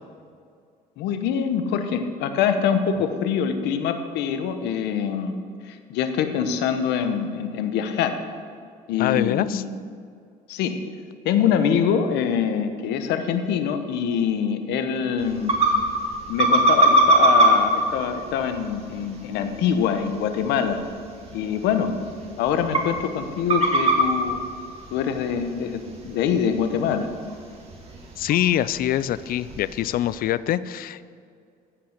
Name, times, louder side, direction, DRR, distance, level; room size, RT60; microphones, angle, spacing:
voice 1, 1.0-5.3 5.7-8.2 8.9-9.7 10.5-10.8 11.2-15.6 16.3-20.8 21.3-21.9 22.4-24.4 24.9-27.1, left 7 dB, 90° left, 8 dB, 1.0 m, -24 dB
voice 2, 9.0-9.6 28.2-31.0, left 12 dB, 60° left, 16 dB, 0.4 m, -24 dB
sound 1, 15.2-30.2, right 1 dB, 35° right, 2.1 m, -25 dB
15.0 x 5.7 x 6.6 m, 2.3 s
cardioid pair, 110°, 17 cm